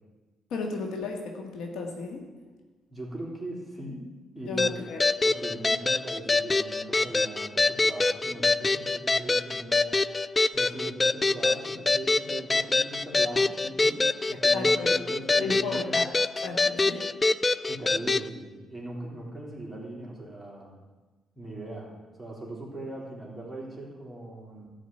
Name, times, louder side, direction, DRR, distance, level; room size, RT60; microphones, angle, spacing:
voice 1, 0.5-2.2 4.5-5.1 14.3-14.9 15.4-16.1 16.4-17.1, left 4 dB, 80° left, 2 dB, 1.8 m, -34 dB
voice 2, 2.9-4.0 4.3-4.7 5.2-10.0 10.5-16.0 17.7-20.7 21.3-21.9 22.2-24.7, right 1 dB, ahead, -4 dB, 3.5 m, -39 dB
sound 1, 4.6-18.3, left 3 dB, 25° left, 0.3 m, -25 dB
12.5 x 5.1 x 8.9 m, 1.3 s
cardioid pair, 90°, 0 cm